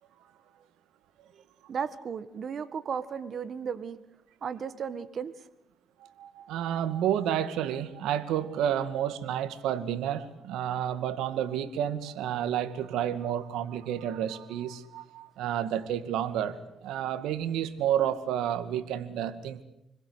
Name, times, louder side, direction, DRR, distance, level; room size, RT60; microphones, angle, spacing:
voice 1, 1.7-4.0 4.4-5.3, right 7 dB, 55° right, 13 dB, 1.7 m, -35 dB
voice 2, 6.0-19.6, right 10 dB, 90° right, 12 dB, 2.3 m, -30 dB
29.5 x 21.5 x 8.3 m, 0.83 s
cardioid pair, 90°, 0 cm